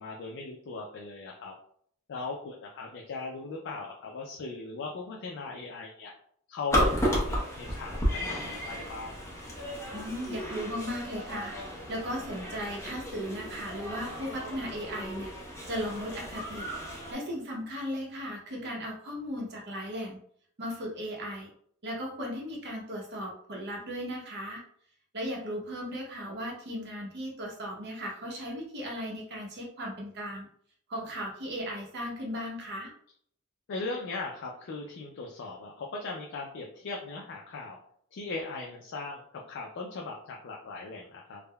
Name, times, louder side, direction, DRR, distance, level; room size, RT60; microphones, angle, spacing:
voice 1, 0.0-1.5 2.1-6.1 6.5-9.1 33.7-37.8 38.1-41.4, left 3 dB, 55° left, 0 dB, 0.4 m, -39 dB
sound 1, 6.7-17.1, equal, 15° left, 0.6 m, -33 dB
voice 2, 9.9-15.3 15.7-16.7 17.1-20.2 20.6-21.5 21.8-24.6 25.1-30.5 30.9-32.9, equal, 50° right, -2 dB, 0.7 m, -36 dB
3.4 x 2.1 x 2.2 m, 0.63 s
head